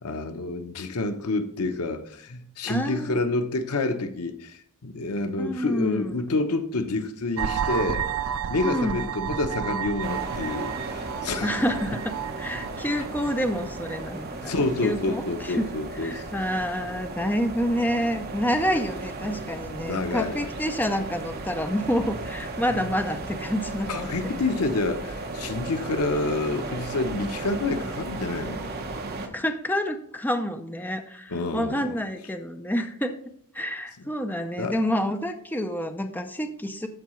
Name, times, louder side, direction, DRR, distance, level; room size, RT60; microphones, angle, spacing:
voice 1, 0.0-8.0 8.5-11.6 14.5-16.2 19.8-20.4 22.8-22.9 23.9-28.6 31.3-31.8 34.6-34.8, left 2 dB, 90° left, 0.8 m, -28 dB
voice 2, 2.7-3.2 5.4-6.1 8.6-9.1 11.4-14.6 14.8-15.7 16.0-24.4 29.3-33.1 33.5-36.9, equal, 10° left, 0.6 m, -28 dB
sound 1, 7.4-14.1, right 7 dB, 70° right, 0.4 m, -32 dB
sound 2, 10.0-29.3, right 2 dB, 45° right, 1.0 m, -35 dB
13.5 x 4.7 x 3.1 m
head